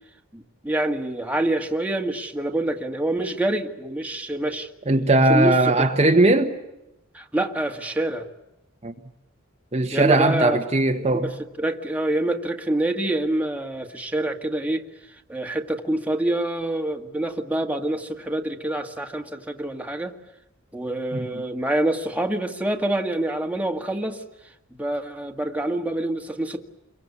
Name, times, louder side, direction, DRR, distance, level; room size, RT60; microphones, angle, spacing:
voice 1, 0.3-4.7 5.3-5.9 7.1-8.3 9.9-10.6 11.1-14.8 15.3-20.2 20.7-24.2 24.7-26.6, right 1 dB, 5° right, 1.9 m, -26 dB
voice 2, 4.9-6.6 8.8-8.9 9.7-11.3 21.1-21.4, right 2 dB, 30° right, 1.3 m, -19 dB
28.0 x 23.5 x 8.5 m
head